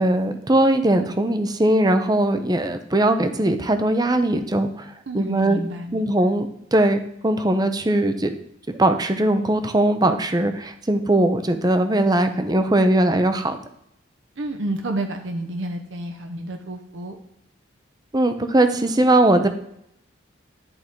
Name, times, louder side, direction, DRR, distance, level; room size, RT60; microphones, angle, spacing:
voice 1, 0.0-5.6 5.9-8.3 8.7-13.6 18.1-19.5, right 1 dB, 20° right, 9 dB, 0.5 m, -20 dB
voice 2, 5.1-6.3 14.4-17.2, right 1 dB, 70° right, 4 dB, 0.7 m, -30 dB
10.5 x 3.6 x 4.5 m, 0.76 s
head